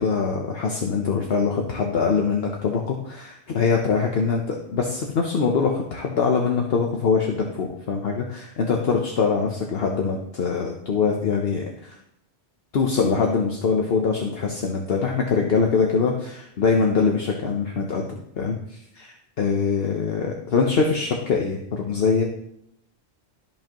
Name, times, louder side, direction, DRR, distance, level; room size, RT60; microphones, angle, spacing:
voice 1, 0.0-12.0 12.7-22.2, left 5 dB, 60° left, 1 dB, 1.1 m, -23 dB
13.0 x 5.3 x 3.0 m, 0.75 s
omnidirectional pair, 1.1 m